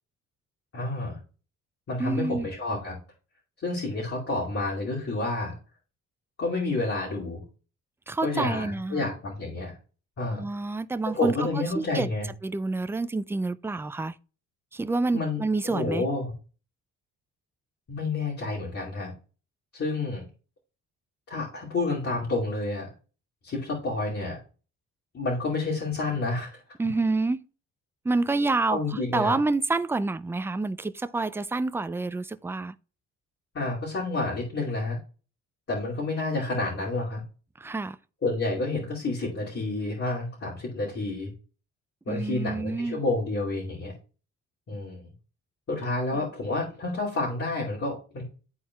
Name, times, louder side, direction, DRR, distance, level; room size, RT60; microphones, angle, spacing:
voice 1, 0.7-1.2 1.9-3.0 3.6-5.5 6.4-7.4 8.2-9.7 10.2-10.5 11.1-12.3 15.1-16.3 17.9-19.1 19.7-20.3 21.3-22.9 23.4-24.4 25.1-26.6 28.7-29.4 33.5-35.0 35.7-37.2 38.2-41.3 42.1-43.9 44.7-45.1 45.7-48.2, left 2 dB, 50° left, 2.7 m, -29 dB
voice 2, 2.0-2.5 8.1-9.1 10.3-12.1 12.4-14.1 14.7-16.0 26.8-27.4 28.0-32.8 37.6-38.0 42.1-43.0 46.1-46.2, right 3 dB, 10° right, 0.3 m, -28 dB
12.0 x 4.2 x 2.3 m
cardioid pair, 90°, 30 cm